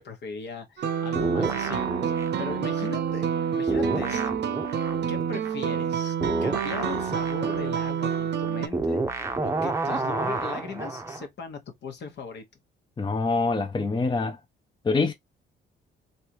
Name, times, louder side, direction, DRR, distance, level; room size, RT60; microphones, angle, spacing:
voice 1, 0.0-1.8 2.4-4.3 5.1-6.1 6.4-12.4, left 5 dB, 60° left, 1.2 m, -38 dB
sound 1, 0.8-8.7, right 8 dB, 60° right, 0.7 m, -28 dB
sound 2, 1.1-3.4 3.7-11.3, right 2 dB, 15° right, 0.7 m, -30 dB
voice 2, 13.0-14.4 14.8-15.1, left 3 dB, 25° left, 0.6 m, -25 dB
3.2 x 2.7 x 3.0 m
cardioid pair, 90°, 20 cm